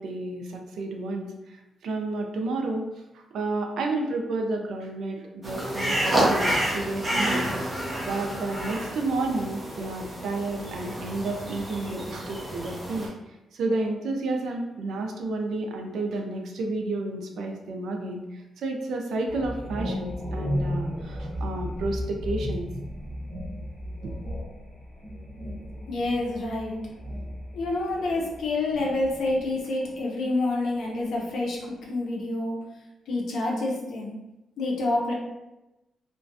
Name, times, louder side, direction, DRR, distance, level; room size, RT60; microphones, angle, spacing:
voice 1, 0.0-2.9 3.1-7.5 8.0-13.2 13.5-22.7 24.0-24.1, right 2 dB, 75° right, 3 dB, 0.4 m, -31 dB
sound 1, 5.4-13.1, right 1 dB, 10° right, 0.6 m, -29 dB
sound 2, 19.3-30.1 30.4-31.6, equal, 20° left, 0.9 m, -35 dB
voice 2, 25.9-26.8 27.5-32.6 33.1-34.1 34.6-35.1, left 2 dB, 70° left, -2 dB, 0.6 m, -28 dB
2.4 x 2.2 x 2.5 m, 0.98 s
cardioid pair, 135°, 0 cm